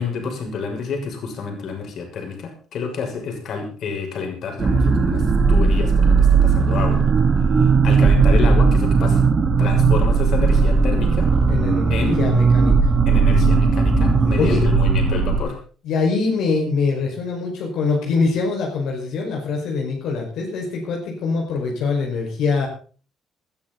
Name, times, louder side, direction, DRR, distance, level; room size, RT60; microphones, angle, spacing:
voice 1, 0.0-5.2 5.5-7.0 7.6-9.2 9.6-11.3 11.9-12.2 13.1-15.6, left 5 dB, 60° left, 3 dB, 6.5 m, -28 dB
sound 1, 4.6-15.4, right 4 dB, 35° right, 3.4 m, -17 dB
voice 2, 11.5-12.9 14.4-14.6 15.8-22.7, left 4 dB, 80° left, -1 dB, 5.4 m, -23 dB
20.5 x 13.5 x 4.1 m, 0.39 s
cardioid pair, 120°, 0 cm